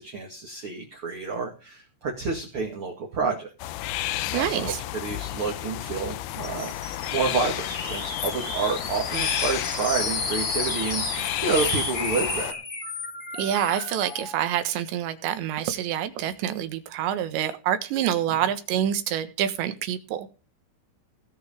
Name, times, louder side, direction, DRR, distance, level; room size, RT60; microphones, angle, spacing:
voice 1, 0.0-3.8 4.3-12.6 18.3-18.4, right 4 dB, 40° right, 1 dB, 2.1 m, -29 dB
sound 1, 3.6-12.5, left 15 dB, 85° left, 2.3 m, -32 dB
voice 2, 4.3-4.8 13.4-20.3, right 10 dB, 75° right, 10 dB, 3.4 m, -27 dB
sound 2, 6.4-14.4, left 3 dB, 25° left, 2.7 m, -32 dB
19.0 x 6.3 x 5.1 m, 0.34 s
omnidirectional pair, 5.4 m